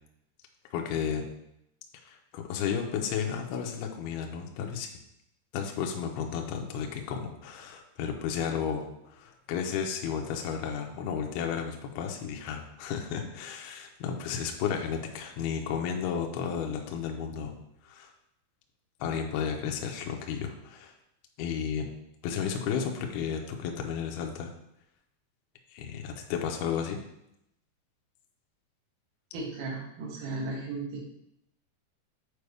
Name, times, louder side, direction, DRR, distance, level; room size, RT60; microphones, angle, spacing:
voice 1, 0.7-1.2 2.1-4.9 5.5-17.6 17.8-18.1 19.0-20.9 21.4-21.9 22.2-24.5 25.7-27.0, left 7 dB, 85° left, 2 dB, 2.3 m, -33 dB
voice 2, 29.3-31.0, right 3 dB, 80° right, -3 dB, 3.9 m, -35 dB
8.2 x 4.4 x 3.4 m, 0.81 s
omnidirectional pair, 5.4 m